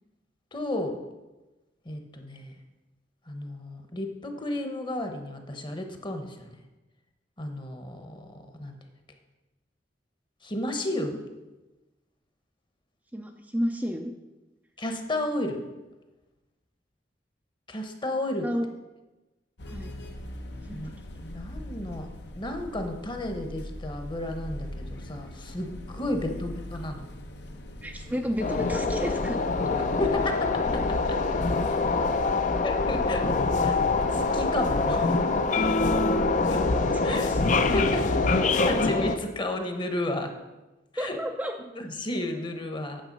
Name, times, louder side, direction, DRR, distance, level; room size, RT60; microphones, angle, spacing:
voice 1, 0.5-1.0 1.8-2.5 3.3-6.5 7.4-8.8 10.4-11.2 14.8-15.6 17.7-18.5 20.7-20.9 21.2-22.1 22.4-27.0 30.0-31.2 32.6-33.2 33.6-33.8 34.1-35.2 36.5-36.6 37.0-37.3 37.7-38.1 38.6-40.3 40.9-41.2 41.8-43.0, left 1 dB, 25° left, 5 dB, 1.0 m, -32 dB
voice 2, 13.1-14.1 18.4-18.7 19.7-19.9 20.6-20.8 26.3-26.4 27.8-29.4 37.1-37.4 41.0-41.5, equal, 10° right, 2 dB, 0.5 m, -31 dB
sound 1, 19.6-34.9, left 1 dB, 70° left, 0.9 m, -41 dB
sound 2, 28.4-39.2, left 3 dB, 45° left, 0.6 m, -25 dB
9.0 x 6.4 x 5.3 m, 1.1 s
head